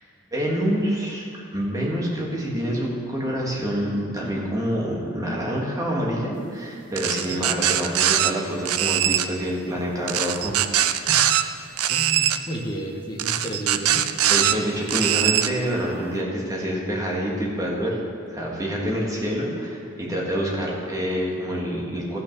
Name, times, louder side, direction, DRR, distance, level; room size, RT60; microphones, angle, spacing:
voice 1, 0.3-1.3 1.5-10.6 10.8-11.1 14.3-18.0 18.3-22.2, equal, 15° right, -3 dB, 1.8 m, -27 dB
sound 1, 7.0-8.3 8.7-9.3 10.1-11.4 11.8-12.4 13.2-14.5 14.9-15.5, right 11 dB, 85° right, 0.5 m, -21 dB
voice 2, 11.1-11.4 11.9-14.1, right 1 dB, 20° left, 0 dB, 1.2 m, -32 dB
14.5 x 6.2 x 6.0 m, 2.4 s
head